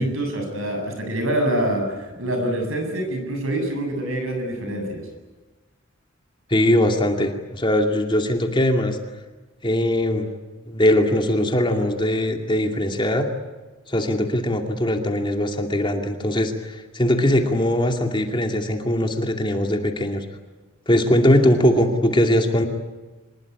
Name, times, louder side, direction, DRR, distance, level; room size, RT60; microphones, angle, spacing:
voice 1, 0.0-5.1, right 1 dB, 75° right, 5 dB, 7.8 m, -25 dB
voice 2, 6.5-9.0 9.6-10.3 10.7-13.3 13.9-20.2 20.9-22.7, left 1 dB, 25° left, 4 dB, 2.5 m, -20 dB
25.5 x 21.5 x 9.7 m, 1.2 s
head